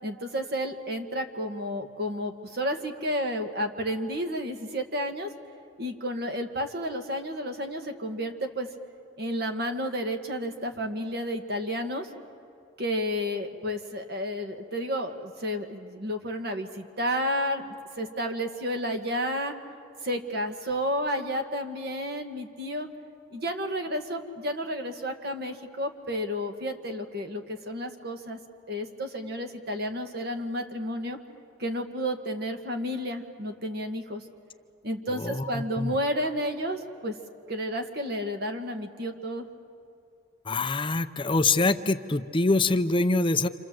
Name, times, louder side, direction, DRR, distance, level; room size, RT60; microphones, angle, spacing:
voice 1, 0.0-5.3 5.8-8.7 9.2-12.1 12.8-19.5 20.0-22.9 23.3-28.4 28.7-31.2 31.6-34.2 34.8-37.1 37.5-39.5, equal, 55° right, 5 dB, 1.9 m, -31 dB
voice 2, 35.2-35.9 40.5-43.5, left 3 dB, 25° left, 9 dB, 0.6 m, -25 dB
28.0 x 27.5 x 7.8 m, 2.5 s
head